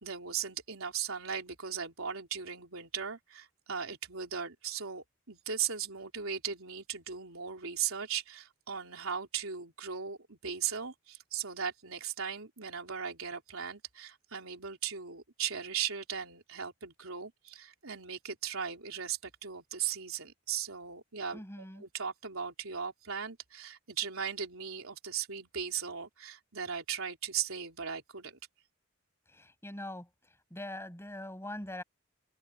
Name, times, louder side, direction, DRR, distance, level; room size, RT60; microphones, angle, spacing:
voice 1, 0.0-28.4, right 7 dB, 80° right, 3.6 m, -38 dB
voice 2, 21.3-21.8 29.3-30.1 30.5-31.8, left 1 dB, 10° left, 7.7 m, -42 dB
head